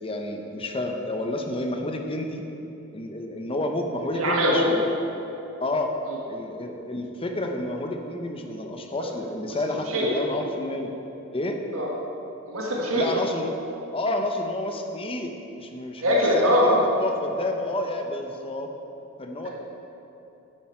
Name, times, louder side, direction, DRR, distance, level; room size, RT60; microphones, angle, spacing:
voice 1, 0.0-2.4 2.9-4.9 5.6-5.9 6.3-10.9 11.3-11.6 12.9-13.5 13.9-18.7 19.2-19.5, left 1 dB, 25° left, 3 dB, 0.8 m, -30 dB
voice 2, 4.1-4.7 9.9-10.1 11.7-11.9 12.5-13.1 16.0-16.8 19.4-19.5, equal, 80° right, -3 dB, 1.5 m, -22 dB
9.5 x 9.0 x 4.4 m, 3.0 s
head